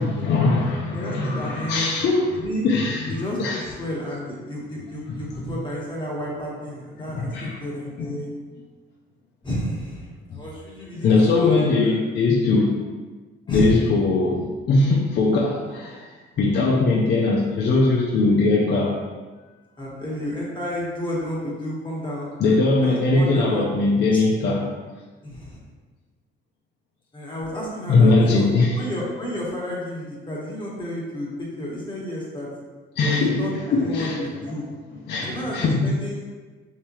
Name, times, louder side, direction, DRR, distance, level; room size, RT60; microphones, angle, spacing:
voice 1, 0.0-2.3 2.6-3.6 5.3-5.4 7.0-7.6 8.0-8.1 10.3-10.4 11.0-12.7 13.5-16.1 16.4-19.0 22.4-24.7 27.9-28.8 33.0-34.2 35.1-35.9, left 3 dB, 60° left, -2 dB, 0.5 m, -20 dB
voice 2, 0.9-1.9 2.3-2.6 3.1-8.3 9.4-11.9 13.5-13.7 19.8-23.6 24.1-24.2 25.2-25.6 27.1-28.5 28.8-32.5 33.0-34.7 35.2-36.2, equal, 25° left, -5 dB, 1.2 m, -31 dB
3.4 x 2.8 x 3.0 m, 1.3 s
cardioid pair, 90°, 20 cm